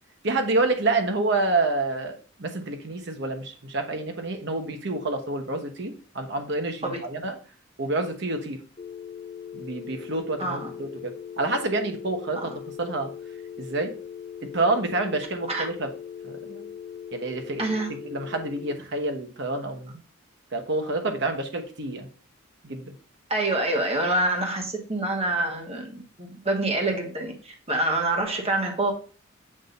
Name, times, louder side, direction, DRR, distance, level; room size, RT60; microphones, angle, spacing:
voice 1, 0.2-7.4 7.8-8.6 9.5-12.5 12.8-13.1 13.6-13.9 14.4-15.9 16.2-16.7 17.1-17.6 18.1-20.0 20.5-22.1 22.6-22.9, right 2 dB, 60° right, 6 dB, 1.0 m, -28 dB
sound 1, 8.8-18.8, left 8 dB, 35° left, 0.4 m, -40 dB
voice 2, 10.4-10.7 12.3-12.5 15.5-15.7 17.6-17.9 23.3-28.9, right 2 dB, 30° right, 2 dB, 1.3 m, -26 dB
7.5 x 2.7 x 5.1 m, 0.39 s
head